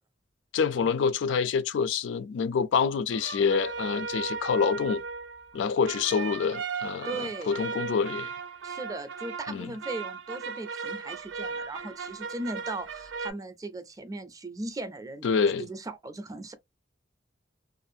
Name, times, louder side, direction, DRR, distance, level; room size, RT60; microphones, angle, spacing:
voice 1, 0.5-5.0 5.5-8.3 9.5-9.7 15.2-15.7, left 6 dB, 80° left, 0.3 m, -27 dB
sound 1, 3.1-13.3, right 5 dB, 90° right, 0.4 m, -37 dB
voice 2, 7.0-7.6 8.6-15.3 15.7-16.5, right 2 dB, 20° right, 0.4 m, -38 dB
2.5 x 2.3 x 2.5 m
head